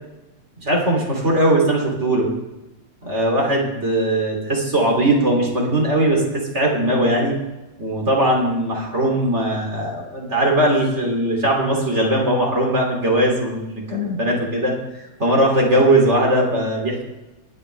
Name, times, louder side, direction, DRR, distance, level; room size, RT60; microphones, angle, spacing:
voice 1, 0.6-2.3 3.0-7.3 7.8-14.7 15.2-17.0, right 1 dB, 35° right, -1 dB, 3.2 m, -19 dB
22.0 x 8.6 x 3.4 m, 1.0 s
omnidirectional pair, 2.1 m